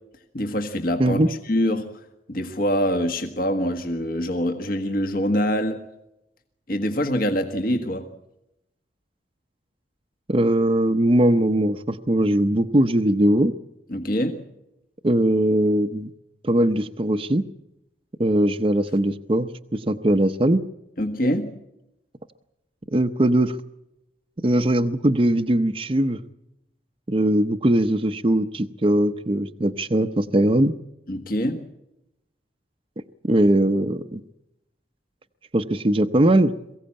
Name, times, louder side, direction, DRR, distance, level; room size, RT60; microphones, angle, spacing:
voice 1, 0.3-1.9 2.3-5.8 6.7-8.1 13.9-14.4 21.0-21.5 31.1-31.6, equal, 50° left, 6 dB, 1.6 m, -24 dB
voice 2, 10.3-13.5 15.0-16.1 16.4-17.4 18.2-20.6 22.9-23.6 24.4-26.2 27.1-30.7 33.2-34.2 35.5-36.5, right 1 dB, 30° right, 6 dB, 0.7 m, -20 dB
22.5 x 16.0 x 8.6 m, 0.89 s
head